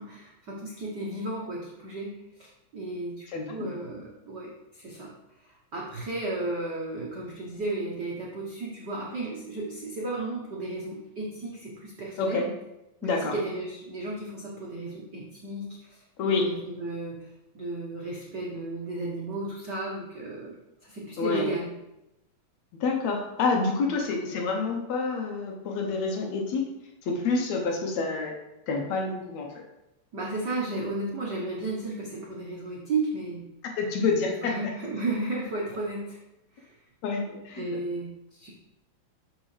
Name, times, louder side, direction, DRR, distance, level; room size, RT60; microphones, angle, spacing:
voice 1, 0.0-5.1 5.4-12.5 13.0-17.3 17.5-20.6 20.8-21.7 30.1-33.5 34.4-36.2 36.5-36.7 37.6-38.5, right 2 dB, 75° right, -4 dB, 0.9 m, -34 dB
voice 2, 3.3-3.7 12.2-12.5 13.0-13.3 16.2-16.4 21.2-21.5 22.8-26.6 27.0-28.3 28.7-29.5 33.8-34.5 37.0-37.6, left 4 dB, 70° left, 1 dB, 2.0 m, -27 dB
12.5 x 4.7 x 3.3 m, 0.91 s
omnidirectional pair, 3.7 m